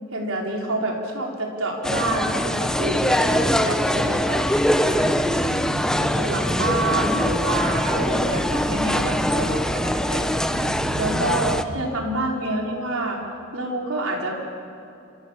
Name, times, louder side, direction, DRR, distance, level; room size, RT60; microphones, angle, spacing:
voice 1, 0.1-4.5 5.9-10.3 11.0-13.2 13.5-14.3, right 1 dB, 85° right, 0 dB, 5.0 m, -27 dB
sound 1, 1.8-11.6, equal, 5° left, 0.8 m, -22 dB
voice 2, 4.7-6.8 10.5-11.8, right 1 dB, 60° right, 0 dB, 2.4 m, -33 dB
27.5 x 26.5 x 7.6 m, 2.7 s
head